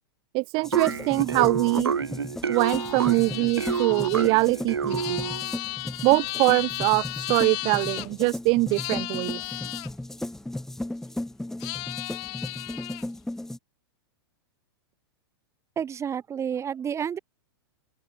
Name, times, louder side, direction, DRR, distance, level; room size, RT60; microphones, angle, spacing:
voice 1, 0.3-1.9 2.5-5.3 6.0-9.4, right 27 dB, 40° right, 1.0 m, -23 dB
sound 1, 0.6-13.6, left 1 dB, 5° left, 1.0 m, -36 dB
sound 2, 0.7-5.5, right 6 dB, 90° right, 2.8 m, -29 dB
sound 3, 2.5-8.1 8.7-9.9 11.6-13.0, left 39 dB, 45° left, 0.9 m, -35 dB
voice 2, 15.8-17.2, right 8 dB, 20° right, 4.1 m, -30 dB
open air
hypercardioid pair, 110°, 13 cm